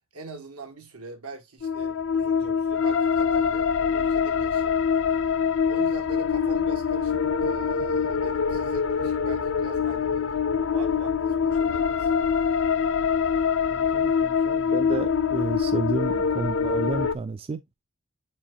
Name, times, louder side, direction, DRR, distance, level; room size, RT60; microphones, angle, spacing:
voice 1, 0.1-4.8 5.7-12.1, right 3 dB, 85° right, 1.8 m, -42 dB
sound 1, 1.6-17.1, left 6 dB, 55° left, 0.4 m, -24 dB
voice 2, 13.7-17.6, right 3 dB, 25° right, 0.3 m, -31 dB
7.5 x 4.7 x 2.7 m
head